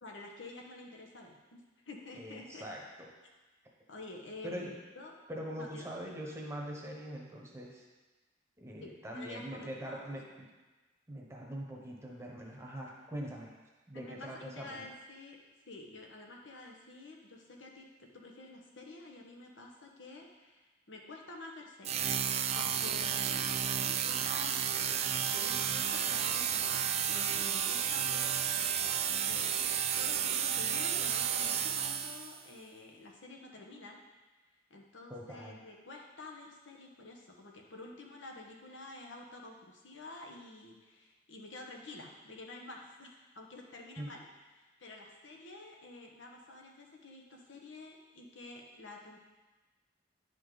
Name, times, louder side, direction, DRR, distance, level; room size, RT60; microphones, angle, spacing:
voice 1, 0.0-1.6 1.9-2.6 3.9-5.2 5.5-5.9 8.8-10.1 13.9-15.4 15.7-22.1 22.5-28.4 29.2-29.7 30.0-34.0 34.7-44.3 44.6-49.2, left 2 dB, 80° left, 0 dB, 1.2 m, -49 dB
voice 2, 2.1-3.1 4.4-4.7 5.3-7.8 8.6-10.5 11.1-13.5 13.9-14.8 35.1-35.6 44.0-44.1, equal, 15° right, -2 dB, 1.0 m, -43 dB
sound 1, 21.8-32.4, right 8 dB, 35° right, 0.4 m, -32 dB
10.5 x 5.2 x 4.0 m, 1.2 s
head